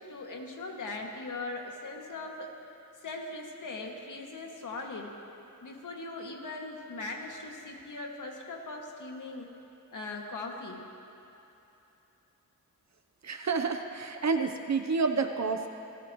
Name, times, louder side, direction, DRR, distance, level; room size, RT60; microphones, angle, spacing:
voice 1, 0.0-2.5 3.0-5.1 5.6-9.5 9.9-10.9, left 3 dB, 65° left, 0 dB, 2.2 m, -40 dB
voice 2, 13.2-15.7, right 4 dB, 50° right, 6 dB, 0.9 m, -29 dB
28.0 x 14.0 x 3.1 m, 3.0 s
cardioid pair, 80°, 34 cm